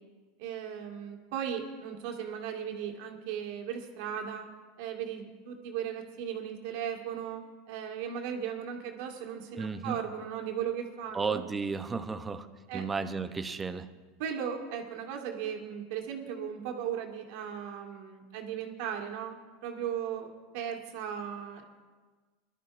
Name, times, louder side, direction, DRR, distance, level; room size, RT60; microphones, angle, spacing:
voice 1, 0.4-4.5 4.8-11.5 12.7-12.9 14.2-21.7, right 8 dB, 65° right, 2 dB, 1.8 m, -37 dB
voice 2, 9.6-10.0 11.1-12.5 12.7-13.9, right 4 dB, 15° right, 9 dB, 0.7 m, -33 dB
23.0 x 12.0 x 2.6 m, 1.4 s
supercardioid pair, 135°, 0 cm